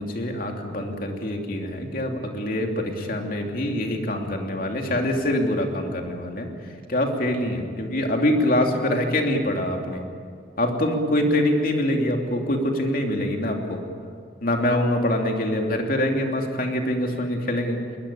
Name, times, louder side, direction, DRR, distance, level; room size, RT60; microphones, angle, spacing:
voice 1, 0.0-6.5 6.9-10.0 10.6-13.8 14.4-17.8, left 1 dB, 50° left, 2 dB, 2.9 m, -24 dB
21.5 x 20.5 x 8.6 m, 2.2 s
head